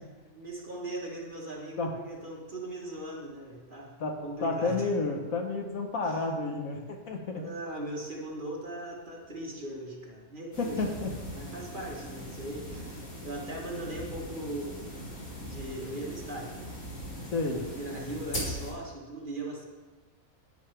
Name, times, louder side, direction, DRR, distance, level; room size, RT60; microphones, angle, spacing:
voice 1, 0.3-4.0 4.2-4.9 6.0-6.2 7.4-10.8 11.1-13.0 13.2-14.9 15.4-16.8 17.5-19.6, right 1 dB, 35° right, -2 dB, 1.5 m, -39 dB
voice 2, 4.4-7.4 10.6-11.1 17.3-17.6, left 3 dB, 65° left, 3 dB, 1.4 m, -30 dB
sound 1, 10.5-18.7, equal, 90° left, 3.4 m, -40 dB
10.5 x 9.4 x 3.4 m, 1.3 s
omnidirectional pair, 1.6 m